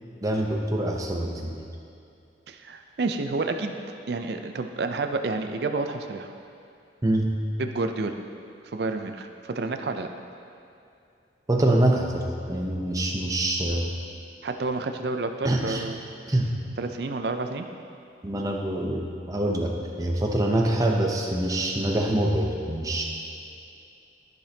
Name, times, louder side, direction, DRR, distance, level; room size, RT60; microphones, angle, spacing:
voice 1, 0.2-1.6 7.0-7.4 11.5-13.9 15.4-15.8 16.3-16.5 18.2-23.0, right 1 dB, 20° right, 0 dB, 0.6 m, -25 dB
voice 2, 2.5-3.7 4.1-6.3 7.6-8.2 8.6-10.1 14.4-16.0 16.8-17.7, right 3 dB, 60° right, 6 dB, 0.4 m, -29 dB
13.5 x 5.1 x 2.8 m, 2.5 s
head